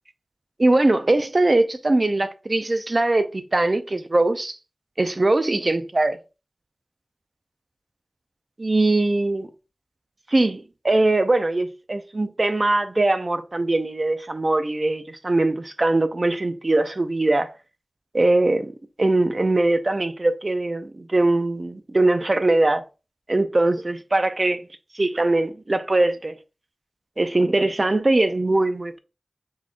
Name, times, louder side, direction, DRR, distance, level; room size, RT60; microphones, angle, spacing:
voice 1, 0.6-4.6 5.0-6.2 8.6-9.5 10.3-17.5 18.1-18.7 19.0-22.8 23.3-24.6 24.9-26.3 27.2-28.9, right 2 dB, 50° right, 0.5 m, -21 dB
3.6 x 3.6 x 2.5 m
cardioid pair, 40°, 0 cm